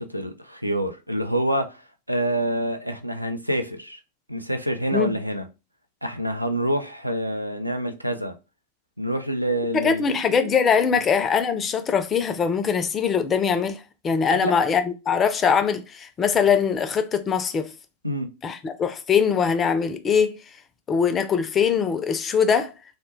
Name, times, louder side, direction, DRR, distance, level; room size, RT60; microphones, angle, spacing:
voice 1, 0.0-1.8 2.1-4.0 4.3-5.5 6.0-8.3 9.0-10.2 10.9-11.0 14.3-14.5 18.0-18.3, right 1 dB, 90° right, 0.3 m, -27 dB
voice 2, 9.7-17.7 18.4-20.3 20.9-22.7, left 6 dB, 25° left, 0.3 m, -22 dB
2.1 x 2.1 x 3.0 m
figure-of-eight pair, 90°, 0 cm